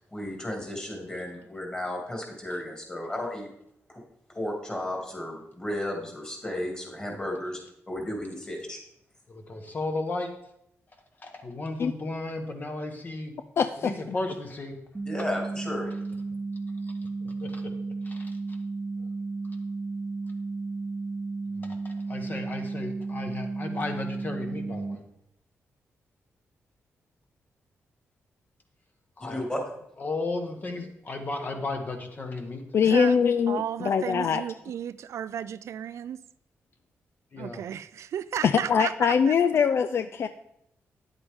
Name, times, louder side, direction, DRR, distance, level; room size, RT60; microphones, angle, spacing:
voice 1, 0.0-3.5 3.9-4.0 4.3-7.6 7.9-8.8 15.1-15.9 29.2-29.6, left 1 dB, 20° left, 0 dB, 2.5 m, -33 dB
voice 2, 9.3-10.3 11.2-13.3 13.8-14.8 16.8-16.9 17.2-17.7 18.0-18.6 21.5-25.0 29.2-29.4 30.0-32.6 37.3-37.6, left 2 dB, 35° left, 4 dB, 1.3 m, -34 dB
voice 3, 13.6-13.9 32.7-34.4 38.4-40.3, left 6 dB, 55° left, 10 dB, 0.4 m, -23 dB
sound 1, 14.9-25.0, right 3 dB, 15° right, 0.8 m, -33 dB
voice 4, 32.8-33.2 33.5-36.2 37.4-39.3, right 9 dB, 70° right, 15 dB, 0.3 m, -34 dB
9.3 x 7.9 x 3.6 m, 0.78 s
cardioid pair, 105°, 5 cm